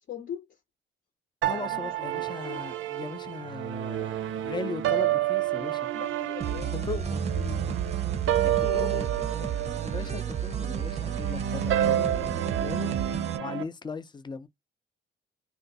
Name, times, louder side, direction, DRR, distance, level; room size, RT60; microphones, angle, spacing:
voice 1, 0.1-0.6 1.7-2.6 5.9-7.0 7.4-9.6 12.9-13.0, left 9 dB, 60° left, 0.9 m, -42 dB
voice 2, 1.4-5.9 6.5-7.2 8.7-9.1 9.8-12.9 13.4-14.5, left 4 dB, 20° left, 0.5 m, -38 dB
sound 1, 1.4-13.6, right 11 dB, 75° right, 0.5 m, -30 dB
sound 2, 6.4-13.4, right 9 dB, 35° right, 0.6 m, -32 dB
2.5 x 2.2 x 3.9 m
cardioid pair, 90°, 20 cm